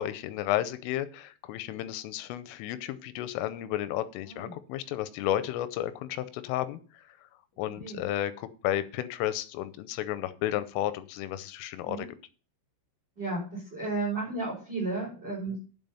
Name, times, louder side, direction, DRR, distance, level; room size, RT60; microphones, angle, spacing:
voice 1, 0.0-7.0 7.6-12.1 15.5-15.6, left 12 dB, 85° left, 13 dB, 3.2 m, -32 dB
voice 2, 7.6-8.0 11.8-12.1 13.1-15.6, right 3 dB, 10° right, -7 dB, 5.1 m, -33 dB
9.1 x 7.6 x 5.6 m, 0.39 s
omnidirectional pair, 6.0 m